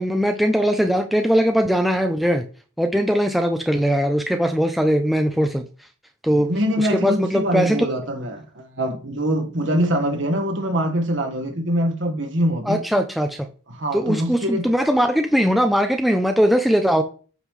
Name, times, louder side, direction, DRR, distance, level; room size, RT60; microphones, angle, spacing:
voice 1, 0.0-2.5 2.8-5.7 6.2-6.5 6.8-7.9 12.7-13.5 13.9-17.0, equal, ahead, 0.5 m, -20 dB
voice 2, 6.3-12.8 13.7-14.7, equal, 60° right, 1.5 m, -24 dB
8.1 x 5.6 x 3.2 m
head